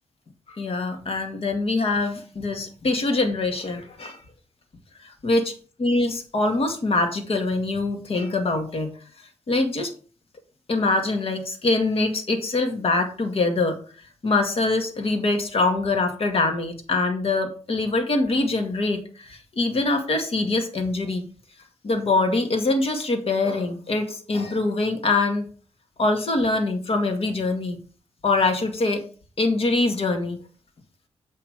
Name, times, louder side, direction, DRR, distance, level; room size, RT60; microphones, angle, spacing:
voice 1, 0.5-4.2 5.0-5.5 5.8-8.9 9.5-9.9 10.7-13.8 14.2-21.2 21.8-25.5 26.0-27.8 28.2-29.0 29.4-30.4, left 2 dB, 60° left, 5 dB, 2.0 m, -24 dB
8.3 x 5.7 x 4.9 m, 0.39 s
cardioid pair, 75°, 12 cm